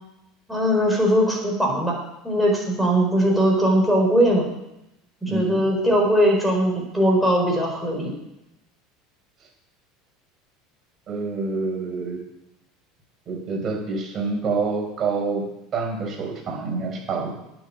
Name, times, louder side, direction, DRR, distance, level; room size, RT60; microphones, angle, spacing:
voice 1, 0.5-2.0 2.2-4.5 5.2-8.1, equal, 5° right, -2 dB, 4.8 m, -20 dB
voice 2, 5.3-5.6 11.1-12.2 13.3-15.4 15.7-17.3, right 4 dB, 40° right, 0 dB, 4.5 m, -27 dB
9.5 x 7.5 x 7.5 m, 0.90 s
hypercardioid pair, 75°, 0 cm